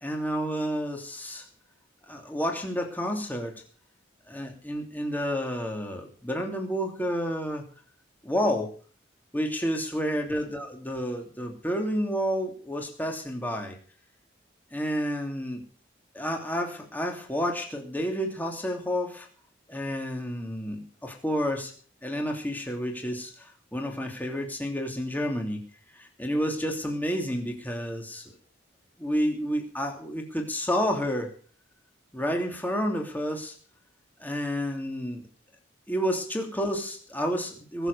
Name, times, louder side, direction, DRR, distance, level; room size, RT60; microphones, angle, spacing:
voice 1, 0.0-1.4 2.1-3.5 4.3-7.6 8.2-8.7 9.3-13.8 14.7-15.6 16.1-19.3 19.7-21.7 22.0-25.6 26.0-28.2 29.0-31.3 32.1-33.5 34.2-35.2 35.9-37.9, equal, 10° left, 2 dB, 2.9 m, -30 dB
21.5 x 7.3 x 6.8 m, 0.43 s
head